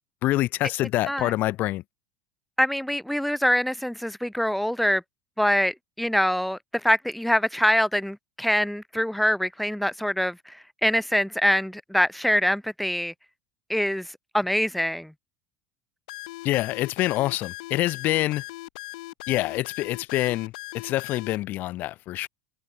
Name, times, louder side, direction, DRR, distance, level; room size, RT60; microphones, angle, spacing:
voice 1, 0.2-1.8 16.4-18.4 19.3-22.3, left 16 dB, 50° left, 0.7 m, -26 dB
voice 2, 2.6-5.0 5.4-13.1 13.7-14.1 14.3-15.1, equal, ahead, 0.3 m, -24 dB
sound 1, 16.1-21.4, left 20 dB, 80° left, 0.5 m, -39 dB
supercardioid pair, 125°, 4 cm